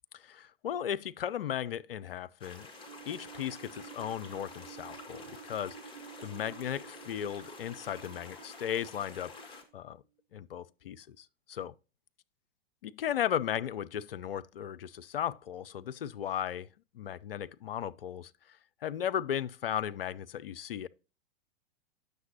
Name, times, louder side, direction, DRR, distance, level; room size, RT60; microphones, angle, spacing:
voice 1, 0.1-2.7 3.1-10.0 10.3-11.7 12.8-16.7 16.9-18.6 18.8-20.9, left 10 dB, 70° left, 0.5 m, -36 dB
sound 1, 2.4-9.6, left 3 dB, 15° left, 1.5 m, -49 dB
sound 2, 2.9-9.7, right 11 dB, 55° right, 0.8 m, -52 dB
9.3 x 6.7 x 2.8 m
figure-of-eight pair, 100°, 30 cm